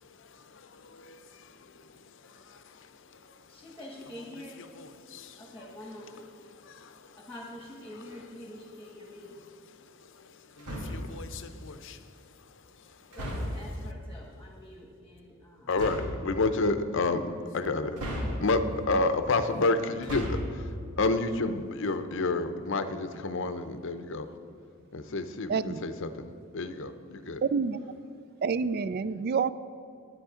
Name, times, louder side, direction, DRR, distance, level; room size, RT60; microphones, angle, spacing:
voice 1, 0.0-7.3 7.8-13.9 15.7-18.0 18.4-24.4 24.9-26.3 26.5-27.4, left 3 dB, 55° left, 10 dB, 0.6 m, -32 dB
voice 2, 3.5-4.6 5.4-6.2 7.2-9.3 13.2-15.7, left 1 dB, 5° left, -2 dB, 1.2 m, -46 dB
sound 1, 10.6-11.2 13.1-13.7 15.7-16.2 17.9-18.7 19.9-20.6, equal, 90° right, 1.9 m, -34 dB
voice 3, 28.4-29.5, right 5 dB, 45° right, 16 dB, 0.3 m, -28 dB
10.5 x 9.8 x 5.0 m, 2.5 s
head